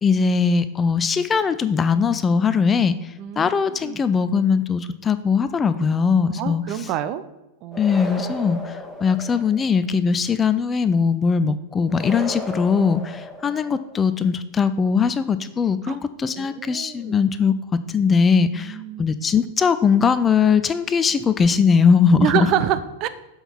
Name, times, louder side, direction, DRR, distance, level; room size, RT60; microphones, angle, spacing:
voice 1, 0.0-6.9 7.8-17.6 17.9-22.5, left 5 dB, 20° left, 13 dB, 0.4 m, -20 dB
voice 2, 3.2-4.0 6.4-7.2 7.6-7.8 15.9-16.0 16.4-17.2 18.5-19.0 22.1-23.1, right 11 dB, 40° right, 11 dB, 0.6 m, -26 dB
sound 1, 7.7-9.8 11.9-14.0, left 1 dB, 5° left, 1.3 m, -34 dB
7.0 x 5.5 x 5.9 m, 0.96 s
figure-of-eight pair, 90°, 0 cm